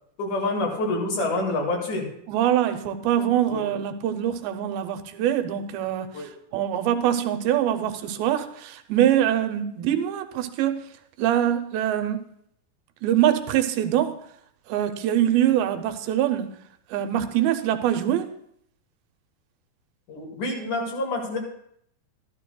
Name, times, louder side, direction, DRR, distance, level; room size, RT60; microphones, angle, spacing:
voice 1, 0.2-2.1 3.5-3.7 6.1-6.3 20.1-21.4, left 2 dB, 60° left, 0 dB, 3.2 m, -27 dB
voice 2, 2.3-10.9 11.2-12.3 13.0-14.2 14.7-16.5 16.9-18.3, right 11 dB, 85° right, 8 dB, 2.5 m, -24 dB
13.0 x 12.0 x 2.2 m, 0.71 s
omnidirectional pair, 4.2 m